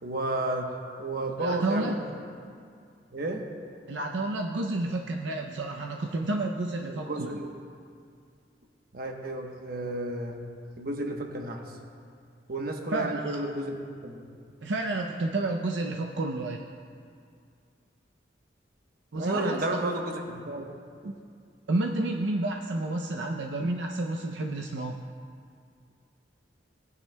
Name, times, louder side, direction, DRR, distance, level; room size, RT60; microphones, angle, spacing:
voice 1, 0.0-0.7 1.0-1.9 3.1-3.4 6.9-7.5 8.9-10.4 10.8-11.6 12.5-14.3 19.1-20.7, right 2 dB, 55° right, 2 dB, 1.0 m, -32 dB
voice 2, 1.4-2.0 3.9-7.4 12.9-13.4 14.6-16.6 19.1-19.6 21.0-21.2 21.7-25.0, right 2 dB, 80° right, 1 dB, 0.6 m, -30 dB
18.5 x 9.7 x 2.2 m, 2.3 s
head